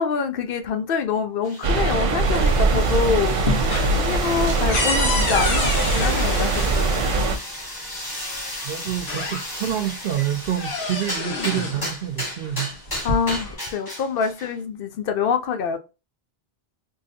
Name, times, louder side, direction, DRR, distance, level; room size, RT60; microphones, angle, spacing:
voice 1, 0.0-3.4 4.0-7.4 13.0-15.8, left 6 dB, 65° left, 0.7 m, -25 dB
sound 1, 1.4-14.6, left 1 dB, 20° left, 1.5 m, -34 dB
sound 2, 1.6-7.4, right 3 dB, 50° right, 0.4 m, -21 dB
sound 3, 2.3-2.9 3.3-7.3 8.4-8.5 8.9-9.8 10.2-11.8 12.7-13.5, left 3 dB, 85° left, 1.2 m, -28 dB
voice 2, 8.6-12.8, right 11 dB, 70° right, 0.8 m, -27 dB
3.7 x 2.6 x 2.7 m
omnidirectional pair, 1.0 m